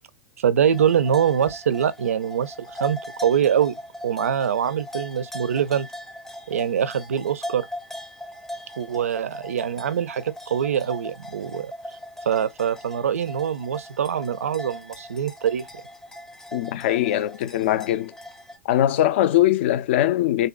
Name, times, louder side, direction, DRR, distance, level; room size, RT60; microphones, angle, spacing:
voice 1, 0.4-3.7 4.0-5.9 6.5-7.7 8.8-11.7 12.3-15.6, right 8 dB, 70° right, 0.4 m, -24 dB
sound 1, 0.6-18.6, left 1 dB, 5° left, 0.6 m, -39 dB
voice 2, 16.5-18.1 18.7-20.5, left 13 dB, 50° left, 0.3 m, -21 dB
3.4 x 2.7 x 2.2 m
figure-of-eight pair, 100°, 8 cm